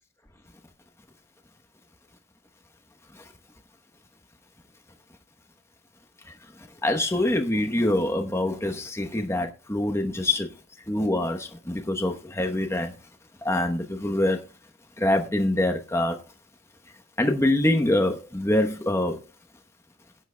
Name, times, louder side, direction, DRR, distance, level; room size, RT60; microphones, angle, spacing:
voice 1, 6.8-10.5 10.9-12.9 13.4-14.4 15.0-16.2 17.2-19.2, left 1 dB, 15° left, 0.9 m, -25 dB
20.5 x 8.9 x 2.2 m
head